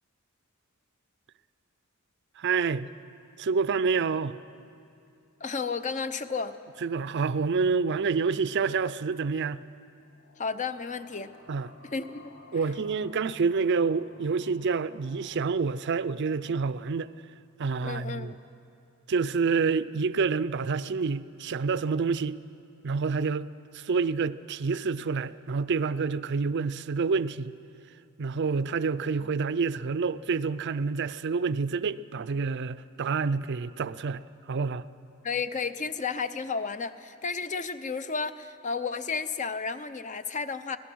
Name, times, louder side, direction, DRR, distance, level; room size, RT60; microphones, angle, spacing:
voice 1, 2.4-2.9 3.4-4.4 6.8-9.6 11.5-11.7 12.5-17.1 17.6-18.3 19.1-22.4 22.8-27.6 28.2-34.2 34.5-34.8, right 5 dB, 55° right, 0.5 m, -28 dB
voice 2, 5.4-6.6 10.4-11.3 11.8-12.2 17.8-18.4 35.2-40.8, left 5 dB, 35° left, 0.7 m, -32 dB
sound 1, 10.0-17.4, left 3 dB, 70° left, 2.0 m, -55 dB
24.5 x 18.0 x 6.2 m
head